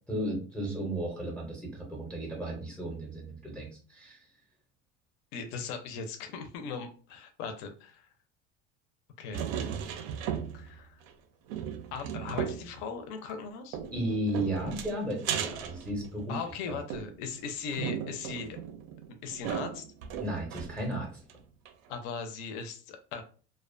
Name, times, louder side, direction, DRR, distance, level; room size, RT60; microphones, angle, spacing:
voice 1, 0.1-4.2 13.9-16.4 16.7-16.8 20.2-21.2, right 1 dB, 5° left, -1 dB, 0.5 m, -34 dB
voice 2, 5.3-8.1 9.2-9.5 10.5-11.0 11.9-13.8 16.3-18.6 19.2-19.9 21.9-23.2, left 5 dB, 75° left, 6 dB, 0.5 m, -38 dB
sound 1, 9.3-10.8 11.1-11.2 11.5-12.7 13.7-16.5 16.9-20.9 21.3-21.4 21.7-21.8, right 8 dB, 75° right, 0.5 m, -36 dB
2.4 x 2.1 x 2.4 m, 0.40 s
cardioid pair, 160°, 29 cm